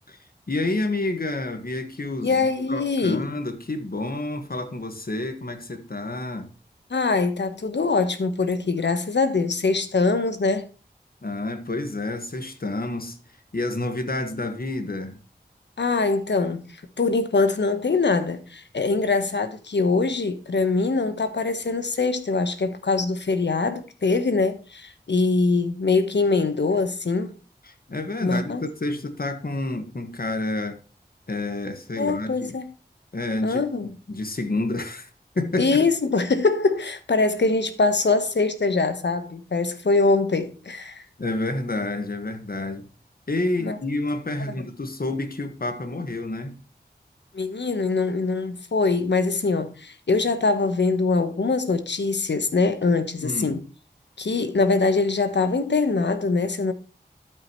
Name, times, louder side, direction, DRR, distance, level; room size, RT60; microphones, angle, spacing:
voice 1, 0.5-2.4 2.7-6.5 11.2-13.2 13.5-15.2 27.6-30.8 31.3-32.5 33.1-33.6 34.1-35.1 35.3-35.9 41.2-42.9 43.3-46.6 53.2-53.6, left 2 dB, 60° left, 1.7 m, -29 dB
voice 2, 2.2-3.3 6.9-10.7 15.8-16.6 17.0-27.3 28.2-28.6 32.0-32.7 33.4-33.9 35.6-41.0 43.6-43.8 47.3-53.6 54.2-56.7, left 3 dB, 90° left, 1.2 m, -23 dB
12.5 x 5.8 x 3.1 m
wide cardioid pair, 45°, 18 cm